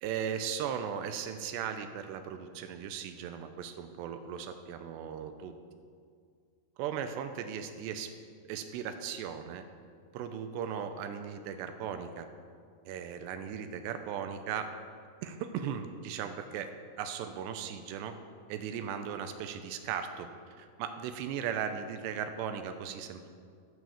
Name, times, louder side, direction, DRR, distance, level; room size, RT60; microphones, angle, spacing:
voice 1, 0.0-5.5 6.8-8.1 8.4-9.6 10.1-12.3 12.9-14.7 15.2-16.7 17.0-18.1 18.5-20.3 20.6-23.3, right 8 dB, 90° right, 7 dB, 2.9 m, -37 dB
15.5 x 6.3 x 7.1 m, 2.2 s
omnidirectional pair, 4.9 m